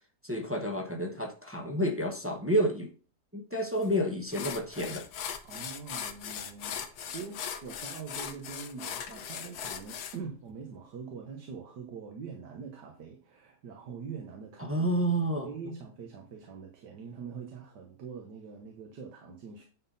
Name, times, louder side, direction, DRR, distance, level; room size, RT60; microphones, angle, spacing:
voice 1, 0.2-2.9 3.3-5.1 14.6-15.5, equal, 15° right, 0.5 m, -30 dB
sound 1, 3.8-3.9 4.3-10.2, left 8 dB, 70° left, 1.2 m, -39 dB
voice 2, 5.4-14.9 15.4-19.6, right 5 dB, 80° right, 1.7 m, -43 dB
9.9 x 4.1 x 4.1 m
omnidirectional pair, 1.8 m